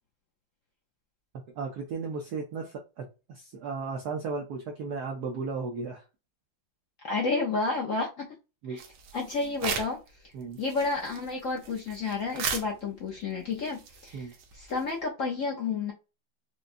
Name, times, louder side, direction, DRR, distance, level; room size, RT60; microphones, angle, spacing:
voice 1, 1.6-6.0 8.6-8.8 10.3-10.6 14.1-14.3, right 4 dB, 65° right, 1.0 m, -35 dB
voice 2, 7.0-8.3 8.7-8.8 9.1-10.0 10.6-14.3 14.5-15.9, left 4 dB, 65° left, 0.8 m, -30 dB
sound 1, 8.8-10.1 10.4-15.0, right 6 dB, 85° right, 1.7 m, -38 dB
5.1 x 2.2 x 2.5 m
omnidirectional pair, 2.2 m